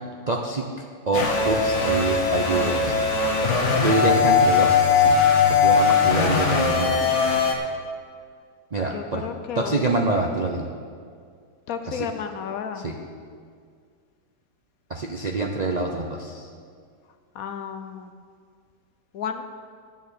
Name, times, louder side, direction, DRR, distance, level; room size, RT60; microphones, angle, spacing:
voice 1, 0.3-0.6 1.1-3.0 3.8-5.1 5.5-7.0 8.7-9.2 9.5-10.7 11.9-12.1 12.7-13.0 14.9-16.5, right 3 dB, 50° right, 1 dB, 0.5 m, -26 dB
sound 1, 1.1-7.5, left 5 dB, 50° left, 1.4 m, -20 dB
voice 2, 8.9-9.8 11.7-12.8 17.3-18.1 19.1-19.4, left 7 dB, 65° left, 8 dB, 1.0 m, -32 dB
10.5 x 7.4 x 7.2 m, 2.1 s
omnidirectional pair, 1.8 m